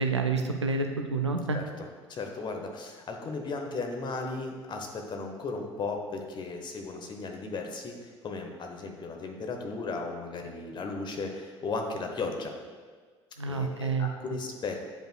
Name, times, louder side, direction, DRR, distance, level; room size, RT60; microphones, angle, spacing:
voice 1, 0.0-1.6 13.4-14.4, right 4 dB, 85° right, 5 dB, 0.4 m, -29 dB
voice 2, 2.1-12.5 13.5-14.8, left 3 dB, 30° left, 3 dB, 0.9 m, -36 dB
8.8 x 5.2 x 2.3 m, 1.5 s
figure-of-eight pair, 60°, 14 cm